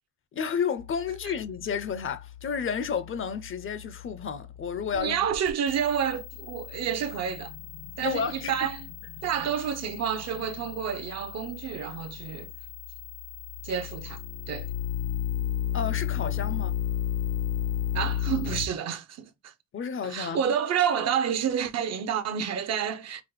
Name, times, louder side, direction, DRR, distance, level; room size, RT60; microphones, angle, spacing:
voice 1, 0.3-5.3 8.0-8.6 15.7-16.8 19.7-20.4, left 6 dB, 45° left, 0.5 m, -31 dB
sound 1, 0.8-18.7, left 11 dB, 80° left, 0.9 m, -34 dB
voice 2, 4.9-7.5 8.0-8.9 9.2-12.5 13.6-14.2 14.5-14.7 17.9-19.5 20.0-23.2, right 8 dB, 60° right, 0.6 m, -29 dB
4.9 x 2.1 x 3.0 m
cardioid pair, 90°, 30 cm